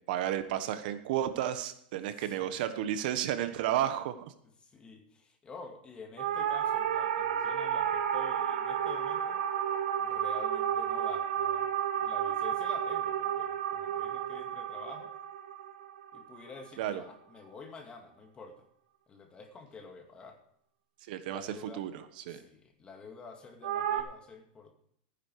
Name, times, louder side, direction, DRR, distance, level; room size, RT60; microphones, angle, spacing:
voice 1, 0.1-4.2 16.8-17.0 21.1-21.4 21.8-21.9 22.3-22.4, right 11 dB, 65° right, 10 dB, 1.3 m, -32 dB
voice 2, 2.2-2.9 4.4-9.5 10.0-11.7 12.0-15.1 16.1-18.7 19.1-20.4 21.2-21.9 22.3-24.7, left 4 dB, 20° left, 4 dB, 2.3 m, -49 dB
sound 1, 6.2-16.7 23.6-24.0, right 9 dB, 80° right, 1.5 m, -32 dB
15.0 x 9.8 x 4.8 m, 0.69 s
supercardioid pair, 140°, 5 cm